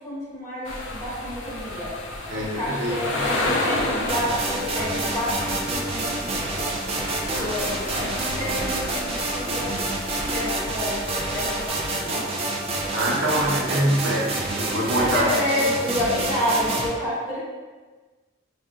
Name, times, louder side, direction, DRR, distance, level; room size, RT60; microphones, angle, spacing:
voice 1, 0.0-1.9 2.5-6.8 7.3-9.7 10.0-12.3 14.7-17.4, left 1 dB, 20° left, -10 dB, 1.1 m, -29 dB
sound 1, 0.6-11.7, left 2 dB, 75° left, 0.5 m, -32 dB
voice 2, 2.3-3.6 7.3-7.5 12.9-15.3, right 1 dB, 85° right, -4 dB, 0.7 m, -25 dB
sound 2, 4.1-16.9, right 2 dB, 30° right, 0.4 m, -28 dB
2.4 x 2.1 x 3.6 m, 1.3 s
head